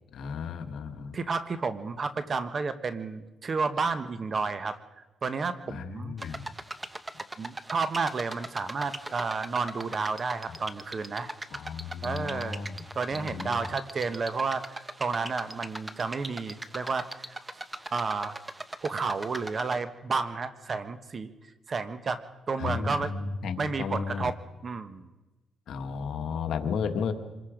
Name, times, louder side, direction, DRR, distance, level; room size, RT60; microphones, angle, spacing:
voice 1, 0.1-1.2 5.7-6.4 11.5-12.8 13.1-13.6 22.6-24.3 25.7-27.1, left 6 dB, 70° left, 6 dB, 1.6 m, -33 dB
voice 2, 1.1-4.8 5.2-6.1 7.4-11.3 12.0-12.6 12.9-17.7 17.9-18.4 18.8-21.3 21.7-22.2 22.5-23.1 23.6-24.4 24.6-25.1, right 4 dB, 40° right, 11 dB, 1.3 m, -31 dB
sound 1, 6.2-19.8, right 2 dB, 15° right, 1.0 m, -40 dB
25.5 x 21.0 x 5.1 m, 1.1 s
cardioid pair, 90°, 0 cm